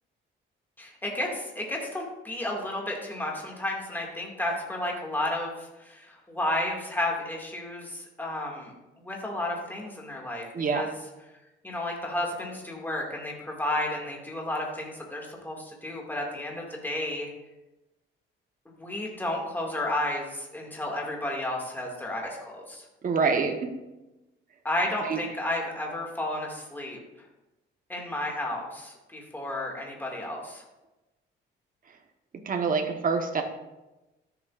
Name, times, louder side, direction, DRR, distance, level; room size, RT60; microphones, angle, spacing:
voice 1, 0.8-10.5 10.7-10.9 11.6-17.3 18.8-22.8 24.6-27.0 27.9-30.6, left 1 dB, 10° left, -1 dB, 2.0 m, -32 dB
voice 2, 23.0-23.8 25.0-25.2 32.4-33.4, right 5 dB, 45° right, 4 dB, 1.1 m, -26 dB
13.5 x 7.1 x 2.5 m, 1.0 s
cardioid pair, 105°, 20 cm